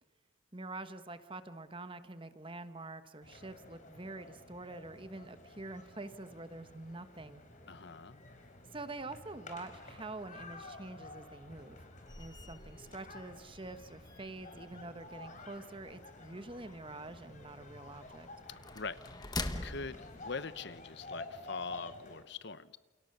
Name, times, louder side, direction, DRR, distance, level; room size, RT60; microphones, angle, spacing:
voice 1, 0.5-7.4 8.7-11.8 12.2-18.3, right 2 dB, 25° right, 10 dB, 1.3 m, -46 dB
sound 1, 3.2-22.2, left 2 dB, 35° left, 4.3 m, -52 dB
voice 2, 7.7-8.2 18.5-19.0 19.2-20.0 20.2-22.8, left 4 dB, 55° left, 14 dB, 0.9 m, -43 dB
sound 2, 12.1-21.0, left 2 dB, 20° left, 1.4 m, -46 dB
29.0 x 29.0 x 6.8 m, 1.2 s
head